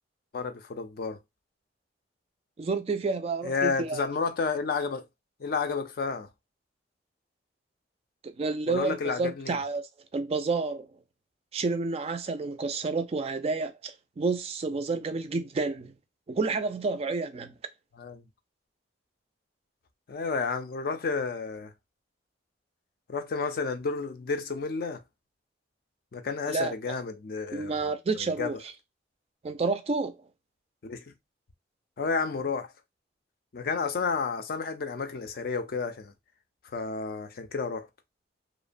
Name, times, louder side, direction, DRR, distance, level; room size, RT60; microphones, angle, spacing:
voice 1, 0.3-1.2 3.4-5.1 5.4-6.3 8.7-9.6 18.0-18.2 20.1-21.7 23.1-25.0 26.1-28.6 30.8-31.0 32.0-32.7 33.5-36.1 36.7-37.9, left 4 dB, 55° left, 0.4 m, -31 dB
voice 2, 2.6-4.0 8.4-9.8 10.1-10.9 11.5-15.9 16.3-17.6 26.5-26.7 27.5-28.6 29.4-30.2, right 3 dB, 35° right, 0.3 m, -30 dB
2.9 x 2.0 x 2.4 m
head